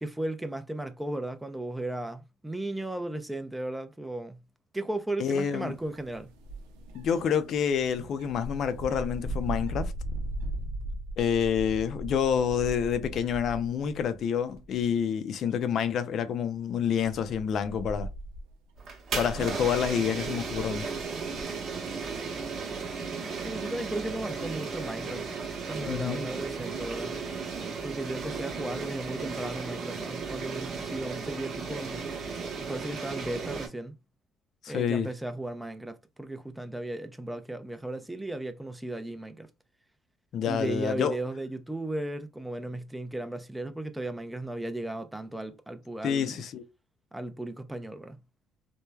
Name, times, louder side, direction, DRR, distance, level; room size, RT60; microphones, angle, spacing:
voice 1, 0.0-4.4 4.7-6.3 23.4-25.3 25.7-27.2 27.8-32.1 32.6-33.9 34.7-39.5 40.5-46.4 47.1-48.2, right 1 dB, 5° right, 0.5 m, -35 dB
voice 2, 5.2-5.8 6.9-9.9 11.2-18.1 19.1-20.9 25.8-26.2 34.6-35.1 40.3-41.2 46.0-46.6, left 7 dB, 60° left, 0.4 m, -28 dB
sound 1, 5.7-14.2 14.5-15.0 15.5-15.6 16.5-21.4, right 1 dB, 90° right, 0.5 m, -39 dB
sound 2, 18.8-33.7, right 5 dB, 50° right, 0.9 m, -35 dB
3.1 x 2.1 x 2.3 m
supercardioid pair, 85°, 0 cm